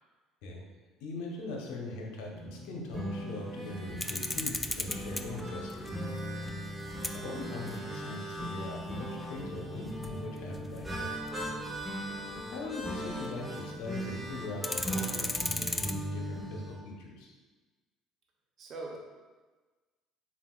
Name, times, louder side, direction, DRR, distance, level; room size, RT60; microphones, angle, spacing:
voice 1, 1.0-5.9 7.1-11.1 12.5-17.3, left 2 dB, 70° left, -1 dB, 0.8 m, -41 dB
sound 1, 2.3-16.8, equal, 10° right, 1.0 m, -39 dB
sound 2, 4.0-13.5 13.8-13.9 14.2-15.9, left 2 dB, 15° left, 0.3 m, -38 dB
voice 2, 12.1-12.5 18.6-19.0, right 3 dB, 50° right, -1 dB, 0.9 m, -44 dB
7.1 x 2.5 x 2.4 m, 1.3 s
hypercardioid pair, 65°, 0 cm